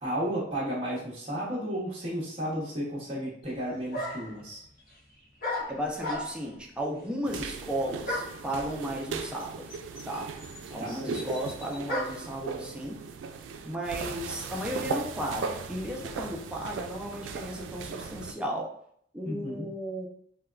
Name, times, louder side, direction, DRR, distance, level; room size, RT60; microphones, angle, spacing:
voice 1, 0.0-4.6 10.8-11.3 19.2-19.7, equal, 30° right, -7 dB, 0.8 m, -33 dB
sound 1, 3.4-3.5 3.9-4.4 5.4-6.6 8.1-8.5 9.4-9.5 9.7-12.3, left 1 dB, 50° left, 0.7 m, -35 dB
voice 2, 5.7-9.7 10.1-10.3 10.7-13.0 13.6-18.7 19.1-20.1, equal, 5° right, -2 dB, 0.4 m, -34 dB
sound 2, 7.2-18.3, right 5 dB, 85° right, 0.3 m, -38 dB
3.4 x 2.2 x 2.3 m, 0.65 s
head